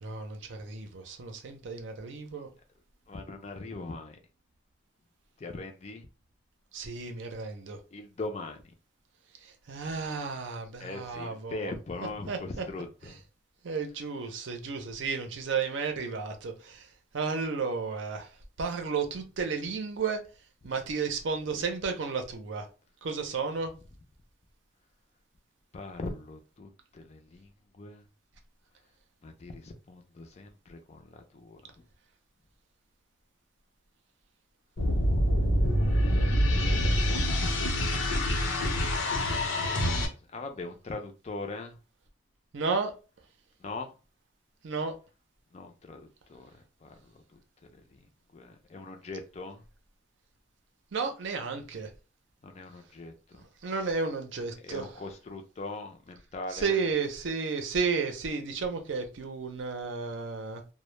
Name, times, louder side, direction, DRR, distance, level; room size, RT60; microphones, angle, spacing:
voice 1, 0.0-2.5 6.7-7.8 9.4-11.7 12.3-12.6 13.0-13.1 13.6-16.9 17.1-18.3 18.6-20.2 20.6-22.7 23.0-23.7 42.5-42.9 44.6-44.9 50.9-51.9 53.6-54.9 56.5-60.6, right 5 dB, 75° right, 0.5 m, -32 dB
voice 2, 3.1-4.2 5.4-6.1 7.9-8.6 10.8-13.2 21.5-21.6 25.7-28.0 29.2-31.7 39.8-41.8 43.6-43.9 45.5-46.5 46.8-47.0 47.3-47.7 48.3-49.6 52.4-53.4 54.6-56.8, left 3 dB, 35° left, 0.4 m, -41 dB
sound 1, 34.8-40.1, equal, 85° left, 0.7 m, -26 dB
2.1 x 2.0 x 3.0 m
head